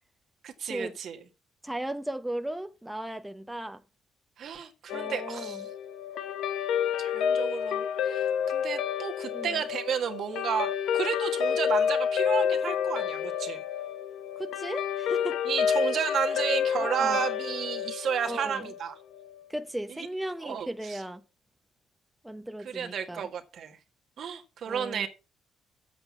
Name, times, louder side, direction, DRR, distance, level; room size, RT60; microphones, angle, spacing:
voice 1, 0.4-1.2 4.4-5.6 7.0-13.6 15.5-18.9 19.9-20.0 20.4-21.0 22.6-23.8 24.2-25.1, right 7 dB, 65° right, 1.7 m, -32 dB
voice 2, 1.6-3.8 4.9-5.7 9.3-9.6 14.4-15.4 16.8-17.2 18.2-18.7 19.5-21.2 22.2-23.2 24.7-25.1, right 1 dB, 5° right, 0.8 m, -36 dB
Guitar, 4.9-19.5, left 8 dB, 80° left, 0.9 m, -29 dB
8.0 x 7.9 x 5.9 m
cardioid pair, 90°, 0 cm